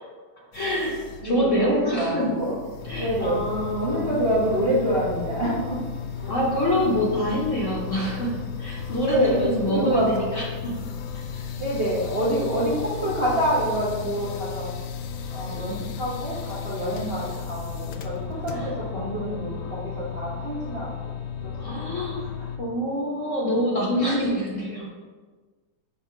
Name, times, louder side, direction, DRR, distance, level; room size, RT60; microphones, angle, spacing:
sound 1, 0.5-19.0, left 3 dB, 85° left, 0.8 m, -43 dB
voice 1, 0.5-1.0 1.2-2.4 2.9-4.1 6.3-10.7 11.3-11.5 18.5-19.5 21.6-22.2 22.6-24.9, equal, 45° left, -5 dB, 1.2 m, -26 dB
voice 2, 1.2-2.5 3.0-3.4 3.8-5.8 6.1-6.3 8.9-10.2 11.6-14.7 15.3-21.1 21.4-21.8 22.2-22.3, right 1 dB, 40° right, -7 dB, 0.9 m, -27 dB
sound 2, 2.8-22.6, left 7 dB, 65° left, 1.2 m, -35 dB
6.8 x 2.8 x 5.6 m, 1.4 s
omnidirectional pair, 2.2 m